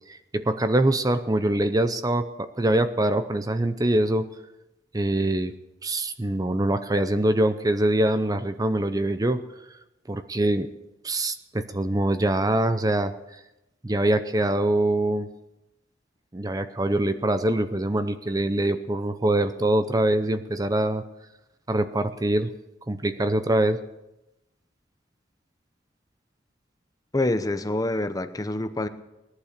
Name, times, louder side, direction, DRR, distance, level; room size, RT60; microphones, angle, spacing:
voice 1, 0.1-4.3 4.9-5.5 5.8-9.4 10.1-10.7 11.0-13.1 13.8-15.3 16.3-21.0 21.7-22.5 22.9-23.8, right 1 dB, 20° right, 10 dB, 0.6 m, -24 dB
voice 2, 27.1-28.9, left 2 dB, 20° left, 10 dB, 0.8 m, -26 dB
18.5 x 11.5 x 6.7 m, 0.94 s
head